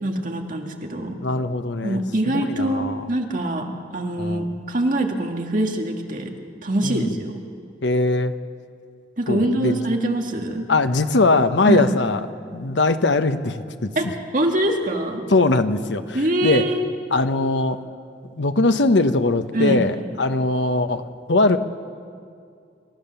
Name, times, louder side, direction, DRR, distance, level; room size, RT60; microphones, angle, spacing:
voice 1, 0.0-1.2 1.8-6.3 6.6-7.4 9.2-10.7 11.7-11.9 14.0-14.1 14.3-15.2 16.1-16.9 19.5-19.8, right 1 dB, 45° right, 2 dB, 1.9 m, -24 dB
voice 2, 1.2-3.0 4.2-4.5 6.8-7.1 7.8-8.3 9.3-9.8 10.7-12.2 12.5-14.1 15.3-16.6 17.1-17.8 18.4-21.6, left 2 dB, 80° left, 9 dB, 1.0 m, -21 dB
27.0 x 13.5 x 7.0 m, 2.3 s
head